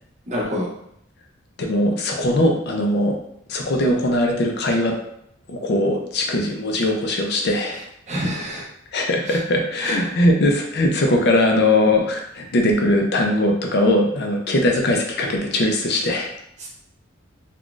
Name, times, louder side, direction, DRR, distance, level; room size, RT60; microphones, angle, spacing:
voice 1, 0.3-0.7 8.1-8.7 9.3-9.4 9.8-10.1 16.6-16.7, equal, 35° right, -3 dB, 0.8 m, -27 dB
voice 2, 1.6-3.1 3.5-4.9 5.5-7.8 8.9-16.3, left 1 dB, 55° left, 2 dB, 0.5 m, -20 dB
3.7 x 2.2 x 2.4 m, 0.73 s
head